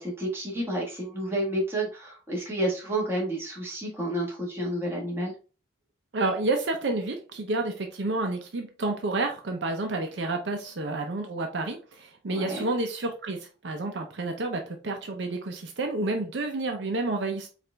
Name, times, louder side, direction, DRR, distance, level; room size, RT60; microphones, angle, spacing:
voice 1, 0.0-5.3 12.3-12.7, right 1 dB, 10° right, -4 dB, 1.3 m, -30 dB
voice 2, 6.1-13.4 13.6-17.5, right 2 dB, 65° right, 4 dB, 0.6 m, -30 dB
4.7 x 2.5 x 3.3 m, 0.35 s
head